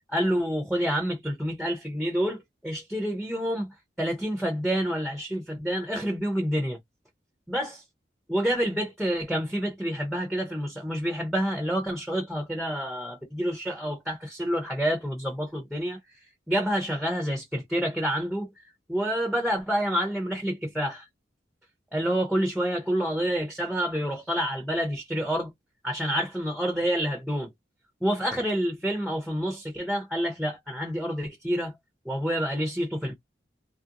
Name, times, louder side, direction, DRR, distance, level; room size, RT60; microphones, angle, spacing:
voice 1, 0.1-3.7 4.0-6.8 7.5-7.8 8.3-16.0 16.5-18.5 18.9-21.1 21.9-25.5 25.8-27.5 28.0-31.8 32.1-33.1, equal, ahead, 0.6 m, -28 dB
3.0 x 2.4 x 2.8 m
head